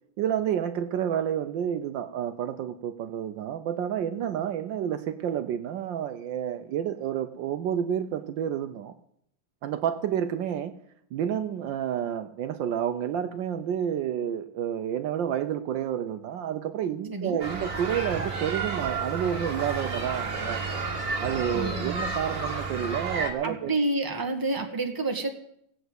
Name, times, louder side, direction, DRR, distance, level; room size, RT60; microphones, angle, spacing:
voice 1, 0.2-8.9 9.6-10.7 11.1-20.7 21.2-23.7, right 9 dB, 70° right, 9 dB, 1.3 m, -30 dB
sound 1, 17.4-23.3, right 4 dB, 45° right, 2.4 m, -31 dB
voice 2, 21.5-21.9 23.4-25.3, right 2 dB, 10° right, 4 dB, 1.4 m, -29 dB
16.0 x 7.9 x 8.0 m, 0.72 s
omnidirectional pair, 2.2 m